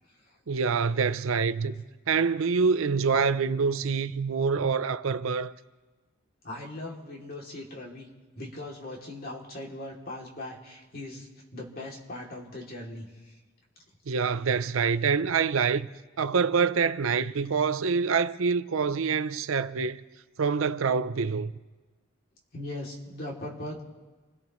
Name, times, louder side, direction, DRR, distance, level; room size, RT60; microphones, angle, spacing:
voice 1, 0.5-1.8 2.1-5.5 14.1-15.9 16.2-20.0 20.4-21.5, right 5 dB, 80° right, 0.5 m, -26 dB
voice 2, 6.4-8.1 8.3-13.4 22.5-23.9, left 1 dB, 45° left, 2.7 m, -39 dB
28.0 x 16.5 x 3.1 m
head